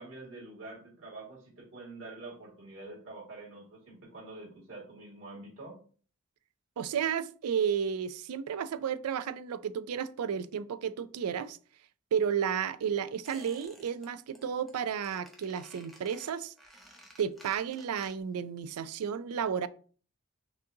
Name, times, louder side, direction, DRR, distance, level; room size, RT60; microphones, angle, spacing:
voice 1, 0.0-5.8, right 2 dB, 60° right, 2.1 m, -46 dB
voice 2, 6.8-11.6 12.1-16.5 17.2-19.7, right 7 dB, 85° right, 0.4 m, -32 dB
Squeak, 13.2-14.1 14.3-14.7 15.0-18.4 18.7-18.8, equal, ahead, 0.6 m, -54 dB
6.0 x 2.6 x 2.7 m
head